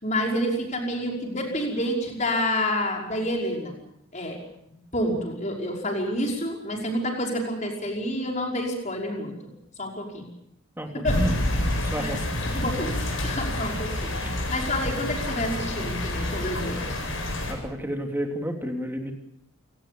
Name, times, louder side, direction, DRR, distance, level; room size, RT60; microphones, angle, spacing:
voice 1, 0.0-3.8 4.1-4.4 4.9-9.3 9.8-10.2 10.9-11.2 12.0-12.1 12.5-14.1 14.5-16.8, equal, 35° left, 0 dB, 5.6 m, -28 dB
voice 2, 10.8-11.3 11.6-12.2 14.2-14.3 17.5-19.1, equal, 10° right, 2 dB, 3.3 m, -31 dB
sound 1, 11.1-17.5, left 1 dB, 65° left, 7.8 m, -28 dB
28.5 x 18.5 x 7.0 m, 0.77 s
head